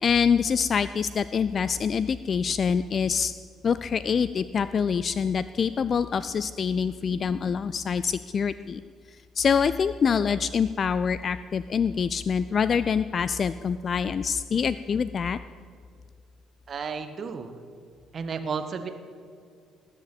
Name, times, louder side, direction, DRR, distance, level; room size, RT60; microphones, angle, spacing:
voice 1, 0.0-3.3 3.6-8.8 9.4-15.4, left 6 dB, 40° left, 15 dB, 0.4 m, -25 dB
voice 2, 16.7-17.6 18.1-18.9, right 5 dB, 40° right, 8 dB, 1.3 m, -32 dB
19.5 x 7.5 x 8.6 m, 2.3 s
figure-of-eight pair, 50°, 0 cm